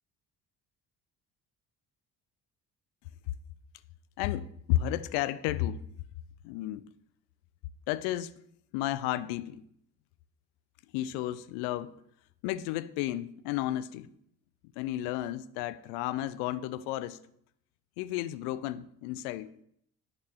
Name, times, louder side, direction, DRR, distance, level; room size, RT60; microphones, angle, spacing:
voice 1, 4.2-5.8 6.4-6.8 7.9-8.3 8.7-9.6 10.9-11.9 12.4-14.1 14.8-17.2 18.0-19.5, left 13 dB, 55° left, 0.5 m, -32 dB
11.0 x 4.2 x 2.4 m
figure-of-eight pair, 50°, 49 cm